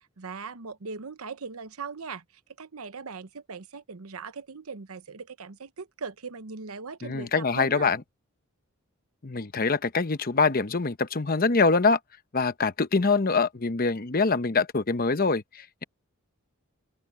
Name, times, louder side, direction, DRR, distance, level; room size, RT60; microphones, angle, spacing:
voice 1, 0.2-2.2 2.6-7.9, right 5 dB, 90° right, 0.9 m, -39 dB
voice 2, 7.0-8.0 9.2-12.0 12.3-15.8, left 4 dB, 45° left, 0.9 m, -24 dB
open air
head